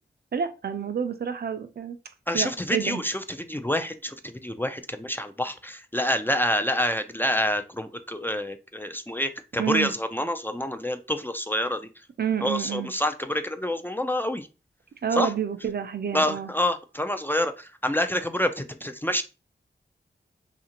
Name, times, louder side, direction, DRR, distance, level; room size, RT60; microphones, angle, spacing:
voice 1, 0.3-2.0 2.3-3.0 9.6-9.9 12.2-12.9 15.0-16.5, right 8 dB, 55° right, 9 dB, 0.4 m, -29 dB
voice 2, 2.3-11.9 12.4-14.5 15.1-15.3 16.1-19.2, left 1 dB, 10° left, 7 dB, 0.3 m, -27 dB
2.5 x 2.4 x 2.8 m, 0.31 s
cardioid pair, 40°, 19 cm